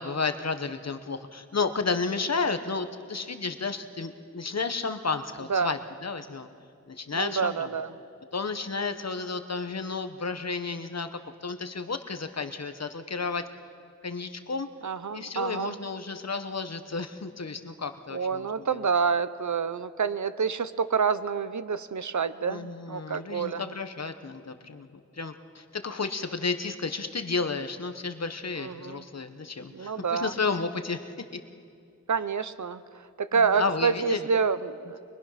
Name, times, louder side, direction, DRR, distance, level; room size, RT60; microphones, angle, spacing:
voice 1, 0.0-6.5 6.9-7.7 8.3-13.4 14.0-14.7 15.1-18.9 22.5-31.0 33.3-34.3, left 4 dB, 60° left, 8 dB, 1.1 m, -32 dB
voice 2, 7.1-7.9 14.8-15.8 18.1-23.6 28.6-29.0 29.7-30.3 32.1-32.8 33.2-35.0, right 5 dB, 75° right, 13 dB, 0.8 m, -28 dB
23.5 x 23.0 x 5.8 m, 2.4 s
wide cardioid pair, 80°, 30 cm